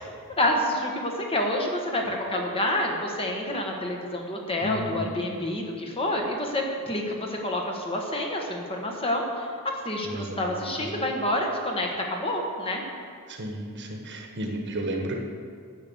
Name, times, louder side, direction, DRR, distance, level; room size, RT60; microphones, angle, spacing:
voice 1, 0.0-12.8, left 1 dB, 25° left, 1 dB, 1.4 m, -28 dB
voice 2, 4.6-5.2 10.0-11.1 13.3-15.2, right 1 dB, 55° right, 2 dB, 1.4 m, -33 dB
11.0 x 6.6 x 8.0 m, 2.2 s
head